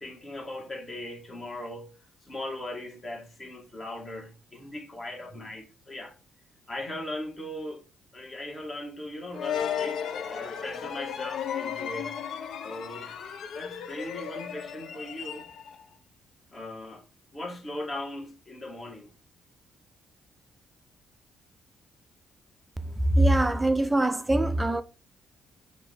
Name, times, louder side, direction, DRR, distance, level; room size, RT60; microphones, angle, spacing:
voice 1, 0.0-1.9 2.2-6.1 6.7-7.8 8.1-12.2 12.6-13.2 13.5-15.5 16.5-17.0 17.3-19.1, left 1 dB, 30° left, 1.8 m, -39 dB
sound 1, 9.3-15.8, left 8 dB, 70° left, 0.6 m, -35 dB
voice 2, 23.2-24.8, right 1 dB, 15° right, 0.5 m, -23 dB
4.7 x 2.8 x 3.4 m
cardioid pair, 90°, 0 cm